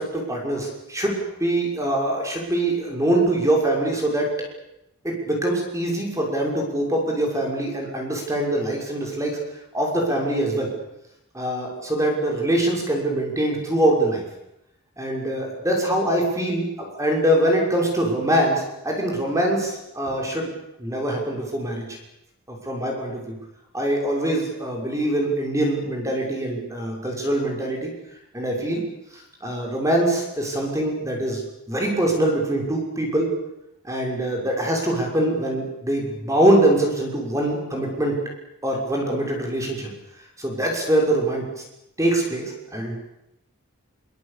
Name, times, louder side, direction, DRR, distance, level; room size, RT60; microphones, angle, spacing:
voice 1, 0.0-4.3 5.0-9.4 9.7-10.7 11.3-14.2 15.0-20.5 20.8-22.0 22.6-23.3 23.7-27.9 28.3-28.8 29.1-31.4 31.7-33.3 33.8-38.2 38.6-39.9 40.4-41.4 42.0-43.0, right 1 dB, 15° right, 0 dB, 6.3 m, -23 dB
24.5 x 23.5 x 8.7 m, 0.86 s
head